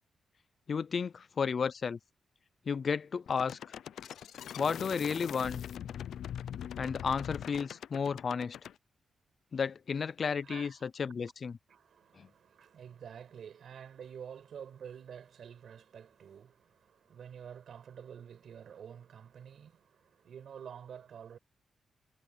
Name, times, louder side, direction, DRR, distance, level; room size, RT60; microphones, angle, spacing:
voice 1, 0.7-2.0 2.7-3.6 4.6-5.6 6.8-8.6 9.5-11.6 12.2-12.3, left 6 dB, 40° left, 0.4 m, -33 dB
sound 1, 3.3-8.7, left 9 dB, 90° left, 0.6 m, -42 dB
voice 2, 10.4-10.9 11.7-21.4, right 8 dB, 60° right, 5.4 m, -49 dB
wide cardioid pair, 175°, 0 cm